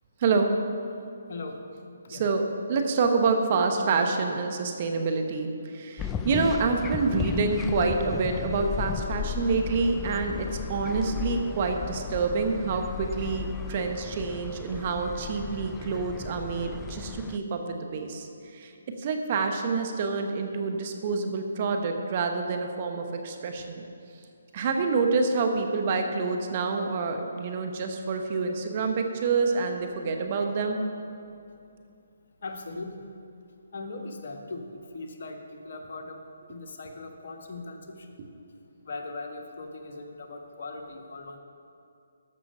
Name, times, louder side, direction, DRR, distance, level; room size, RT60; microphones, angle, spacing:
voice 1, 0.2-0.5 2.1-18.3 18.5-18.7 19.0-23.9 24.5-30.8, right 4 dB, 40° right, 4 dB, 1.1 m, -27 dB
voice 2, 1.3-1.6 2.0-2.2 27.6-27.7 32.4-33.1 33.7-36.2 36.5-38.2 38.8-41.4, left 3 dB, 55° left, 3 dB, 1.2 m, -39 dB
sound 1, 6.0-17.4, left 7 dB, 15° left, 0.4 m, -35 dB
13.5 x 6.2 x 5.5 m, 2.6 s
figure-of-eight pair, 150°, 0 cm